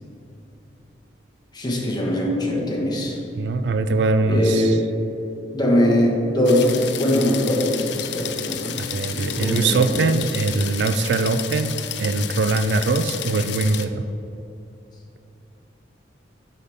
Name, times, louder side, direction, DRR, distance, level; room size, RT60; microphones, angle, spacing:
voice 1, 1.5-3.2 4.3-4.7 5.5-10.2, left 1 dB, 25° left, -3 dB, 1.4 m, -22 dB
voice 2, 3.4-4.8 8.9-11.7 12.0-14.0, right 3 dB, 65° right, 10 dB, 0.4 m, -22 dB
sound 1, 6.4-13.9, left 10 dB, 70° left, 0.5 m, -32 dB
9.3 x 5.6 x 3.5 m, 2.9 s
head